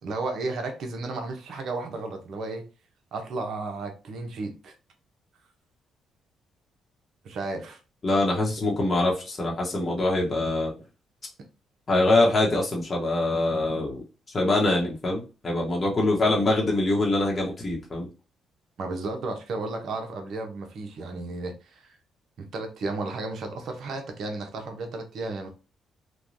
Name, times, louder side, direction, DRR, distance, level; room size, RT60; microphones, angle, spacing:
voice 1, 0.0-2.6 3.1-4.7 7.2-7.8 18.8-21.9 22.4-25.5, right 3 dB, 65° right, 4 dB, 0.7 m, -33 dB
voice 2, 8.0-10.7 11.9-14.0 14.3-18.1, left 2 dB, 30° left, -3 dB, 0.9 m, -24 dB
3.1 x 2.2 x 2.6 m, 0.32 s
cardioid pair, 90°, 0 cm